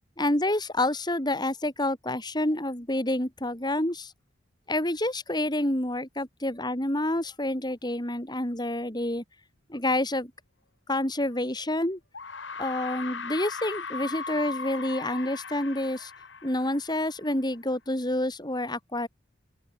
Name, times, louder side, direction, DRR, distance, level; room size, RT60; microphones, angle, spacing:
voice 1, 0.2-4.1 4.7-9.2 9.7-10.3 10.9-12.0 12.6-16.1 16.4-19.1, left 1 dB, 25° left, 4.8 m, -28 dB
sound 1, 11.3-11.4 12.1-17.4, left 5 dB, 85° left, 3.3 m, -38 dB
open air
head